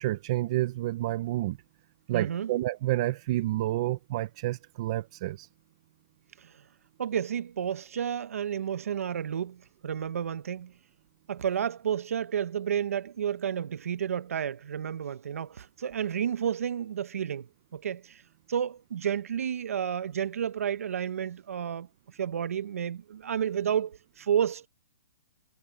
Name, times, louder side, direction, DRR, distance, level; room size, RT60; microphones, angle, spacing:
voice 1, 0.0-1.6 2.1-5.5, right 16 dB, 20° right, 0.4 m, -29 dB
voice 2, 2.1-2.5 6.4-6.5 7.0-10.7 11.3-18.2 18.5-21.9 22.1-24.7, right 8 dB, 55° right, 0.8 m, -31 dB
hypercardioid pair, 175°, 9 cm